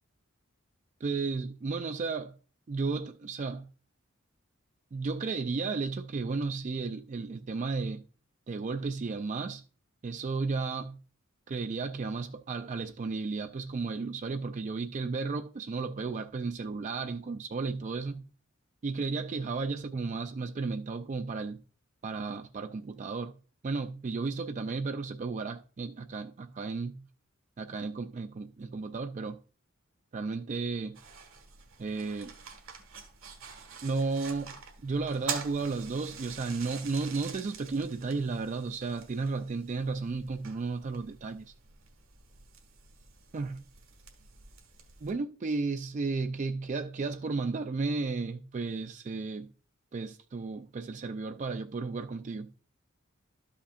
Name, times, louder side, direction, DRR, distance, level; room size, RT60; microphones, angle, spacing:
voice 1, 1.0-2.4 2.7-3.7 4.9-8.1 8.5-9.6 10.0-11.0 11.5-18.2 18.8-21.6 22.0-23.3 23.6-27.1 27.6-29.4 30.1-31.0 31.8-32.3 33.8-34.6 34.8-41.5 43.3-43.6 45.0-49.5 49.9-52.5, right 4 dB, 35° right, 0.3 m, -33 dB
sound 1, 30.9-45.1, right 6 dB, 80° right, 1.6 m, -46 dB
12.5 x 5.7 x 2.5 m
head